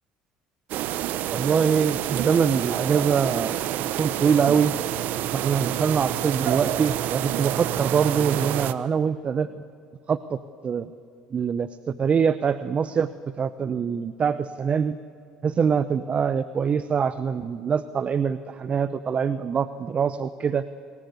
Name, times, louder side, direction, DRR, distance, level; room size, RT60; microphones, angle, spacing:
sound 1, 0.7-8.7, right 12 dB, 60° right, 1.0 m, -28 dB
voice 1, 1.3-3.6 4.0-4.8 5.3-9.6 10.1-10.4 10.6-10.9 11.3-11.7 12.0-13.1 13.4-15.0 15.4-20.6, right 6 dB, 40° right, 14 dB, 0.9 m, -24 dB
28.0 x 21.0 x 8.1 m, 2.5 s
hypercardioid pair, 70°, 3 cm